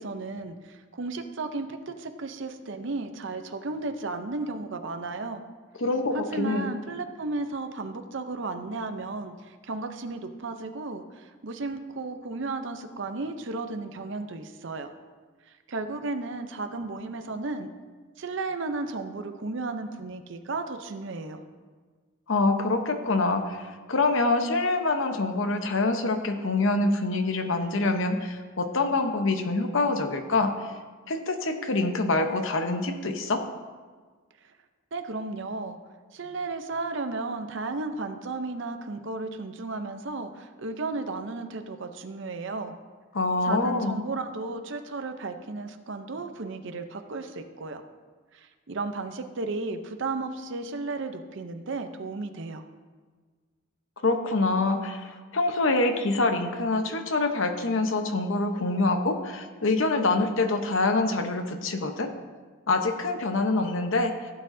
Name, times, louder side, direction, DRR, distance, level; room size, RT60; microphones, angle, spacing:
voice 1, 0.0-5.4 6.1-14.9 15.7-17.7 18.2-21.4 34.9-35.8 36.1-42.7 43.4-47.8 48.3-52.6, right 3 dB, 55° right, 7 dB, 0.6 m, -34 dB
voice 2, 5.8-6.7 22.3-30.7 31.1-33.4 43.1-44.0 54.0-62.1 62.7-64.1, left 2 dB, 60° left, 6 dB, 0.9 m, -25 dB
16.0 x 7.6 x 2.7 m, 1.5 s
head